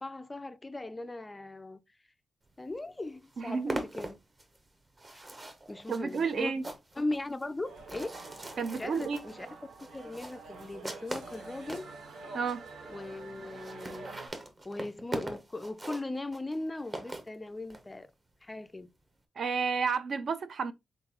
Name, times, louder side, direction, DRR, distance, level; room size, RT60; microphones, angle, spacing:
voice 1, 0.0-1.8 2.6-4.2 5.1-5.2 5.7-6.5 7.0-8.1 8.8-9.5 9.9-11.9 12.9-18.1 18.4-18.9, left 2 dB, 15° left, 0.3 m, -39 dB
sound 1, 2.7-2.8 3.1-11.9 12.5-12.6 12.8-12.9 13.1-13.2 13.5-17.8, right 1 dB, 25° right, 0.7 m, -41 dB
voice 2, 3.4-3.8 5.9-6.6 8.6-9.2 12.3-12.6 19.4-20.7, right 5 dB, 55° right, 0.4 m, -31 dB
sound 2, 7.6-14.3, right 4 dB, 85° right, 1.0 m, -48 dB
4.1 x 3.8 x 2.9 m
wide cardioid pair, 155°, 0 cm